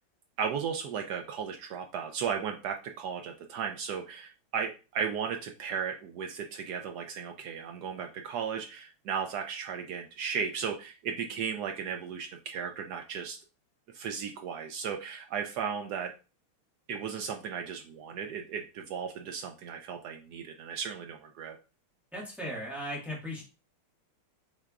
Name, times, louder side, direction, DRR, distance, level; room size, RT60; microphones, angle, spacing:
voice 1, 0.4-13.4 13.9-16.1 16.9-21.6, right 7 dB, 90° right, 4 dB, 0.8 m, -35 dB
voice 2, 22.1-23.4, equal, ahead, -4 dB, 1.3 m, -37 dB
6.3 x 3.4 x 2.4 m, 0.32 s
omnidirectional pair, 2.4 m